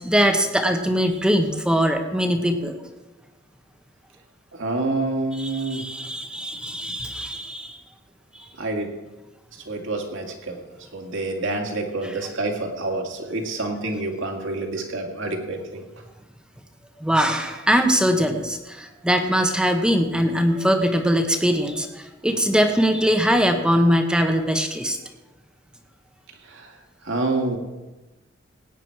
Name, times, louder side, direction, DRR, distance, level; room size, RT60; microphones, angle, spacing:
voice 1, 0.0-2.7 5.4-7.8 8.3-8.4 17.0-25.0, equal, 5° right, 5 dB, 1.0 m, -21 dB
voice 2, 4.5-5.9 8.6-8.9 9.5-10.6 10.9-15.8 26.4-27.6, right 2 dB, 70° right, 2 dB, 2.1 m, -28 dB
17.5 x 9.1 x 4.7 m, 1.1 s
head